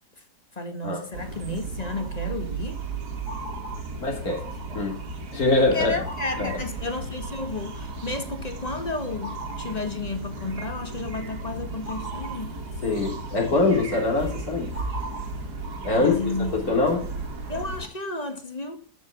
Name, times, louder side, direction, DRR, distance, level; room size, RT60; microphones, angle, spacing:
voice 1, 0.5-2.8 5.7-12.6 15.9-16.5 17.5-18.8, left 2 dB, 25° left, 1.7 m, -32 dB
sound 1, 1.1-17.9, right 3 dB, 70° right, 2.6 m, -35 dB
voice 2, 4.0-5.0 5.3-5.9 6.4-6.6 12.8-14.7 15.8-16.2 16.5-17.1, left 3 dB, 60° left, 3.7 m, -23 dB
13.5 x 5.6 x 8.1 m
omnidirectional pair, 1.8 m